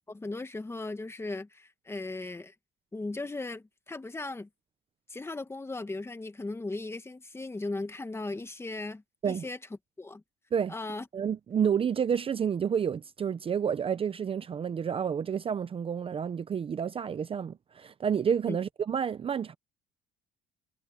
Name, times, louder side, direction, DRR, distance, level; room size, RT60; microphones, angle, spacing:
voice 1, 0.1-2.5 2.9-4.5 5.1-9.6 10.0-10.2 10.7-11.1 18.5-18.6, left 2 dB, 15° left, 1.6 m, -37 dB
voice 2, 11.1-19.5, right 7 dB, 35° right, 0.6 m, -29 dB
cardioid pair, 110°, 17 cm